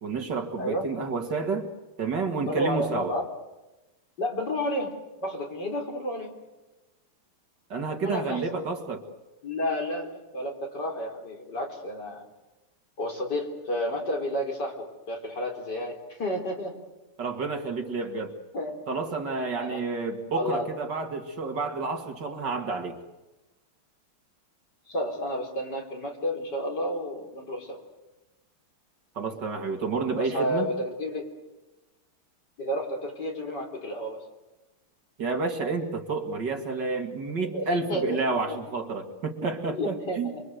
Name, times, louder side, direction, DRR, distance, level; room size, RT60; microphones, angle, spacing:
voice 1, 0.0-1.7 2.0-3.1 7.7-9.0 17.2-18.3 18.9-23.0 29.2-30.7 35.2-40.3, right 4 dB, 55° right, 4 dB, 2.7 m, -30 dB
voice 2, 2.5-3.3 4.2-5.0 5.2-6.3 8.0-8.6 9.4-12.2 13.0-16.8 18.5-18.7 19.6-19.8 20.3-20.7 24.9-27.8 30.2-31.3 32.6-34.2 37.5-38.6 39.7-40.4, left 1 dB, 50° left, 2 dB, 4.4 m, -31 dB
29.5 x 23.0 x 8.0 m, 1.1 s
omnidirectional pair, 2.4 m